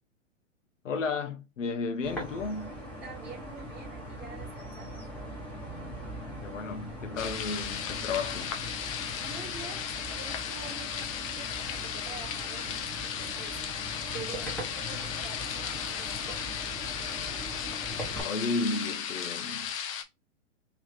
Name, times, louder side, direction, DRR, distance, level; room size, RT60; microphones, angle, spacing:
voice 1, 0.8-2.7 6.4-8.5 18.2-19.7, left 4 dB, 75° left, 0.9 m, -33 dB
sound 1, 2.0-18.2, equal, 5° left, 1.1 m, -41 dB
voice 2, 3.0-5.1 9.1-16.3, right 5 dB, 15° right, 1.5 m, -47 dB
sound 2, 7.2-20.0, left 8 dB, 30° left, 0.4 m, -35 dB
3.1 x 3.1 x 2.4 m
hypercardioid pair, 125°, 38 cm